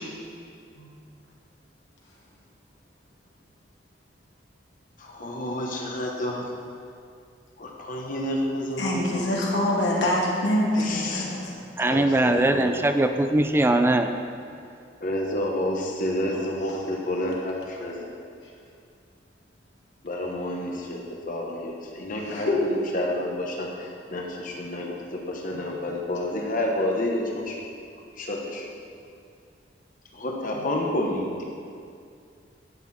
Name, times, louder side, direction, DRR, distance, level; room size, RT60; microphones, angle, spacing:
voice 1, 5.0-6.4 7.6-9.3 10.8-11.3 11.9-12.7 15.0-17.9 20.0-21.0 21.3-22.5 22.9-23.7 24.1-27.5 28.2-28.6 30.2-31.4, left 1 dB, 50° left, -1 dB, 1.2 m, -29 dB
voice 2, 8.8-11.5 16.6-16.8 20.7-20.8 22.2-22.6 25.5-25.6 30.5-30.7, left 1 dB, 80° left, -4 dB, 2.6 m, -25 dB
voice 3, 11.8-14.1, right 1 dB, 15° right, 7 dB, 0.4 m, -21 dB
12.0 x 9.2 x 4.3 m, 2.4 s
head